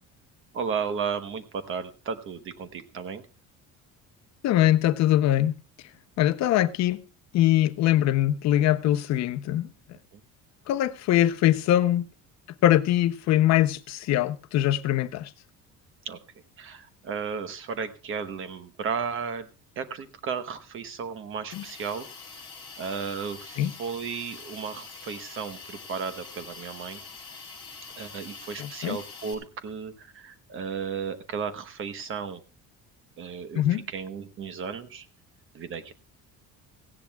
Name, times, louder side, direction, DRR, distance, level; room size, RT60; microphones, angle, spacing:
voice 1, 0.5-3.2 10.1-10.2 16.0-16.2 16.6-19.5 19.8-22.1 22.8-27.0 27.9-32.4 33.2-35.1 35.5-35.9, right 6 dB, 40° right, 1.0 m, -34 dB
voice 2, 4.4-5.6 6.2-7.0 7.3-9.7 10.7-12.0 12.6-15.3 21.5-21.6 23.6-23.7 28.6-29.0 33.5-33.8, left 13 dB, 55° left, 0.7 m, -22 dB
Hiss, 21.5-29.3, left 4 dB, 15° left, 3.6 m, -44 dB
17.5 x 15.5 x 2.3 m
cardioid pair, 170°, 32 cm